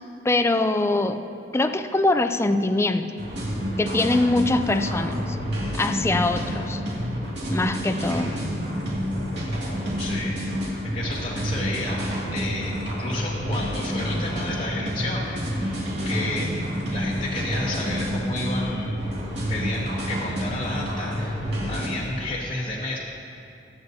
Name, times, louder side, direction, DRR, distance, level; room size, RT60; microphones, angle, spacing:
voice 1, 0.2-1.2 1.5-3.0 3.8-5.4 5.7-6.8 7.5-8.3, left 2 dB, 15° left, 8 dB, 0.4 m, -23 dB
sound 1, 3.2-21.9, equal, 70° right, 2.4 m, -28 dB
voice 2, 10.0-10.4 10.8-19.1 19.4-23.0, left 2 dB, 30° left, -6 dB, 1.0 m, -32 dB
21.5 x 8.2 x 2.7 m, 2.6 s
head